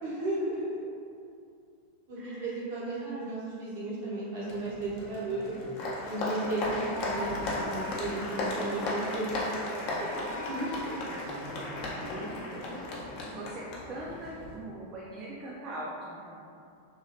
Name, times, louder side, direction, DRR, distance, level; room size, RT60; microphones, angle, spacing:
voice 1, 0.0-0.9 2.1-5.5 6.1-10.2 10.5-10.9, right 2 dB, 50° right, -8 dB, 0.8 m, -35 dB
voice 2, 2.2-2.5 3.0-3.2 11.8-16.5, right 1 dB, 30° right, -5 dB, 0.4 m, -42 dB
Applause, 4.5-14.6, left 1 dB, 45° left, 0.6 m, -35 dB
2.9 x 2.7 x 2.7 m, 2.4 s
figure-of-eight pair, 90°, 0 cm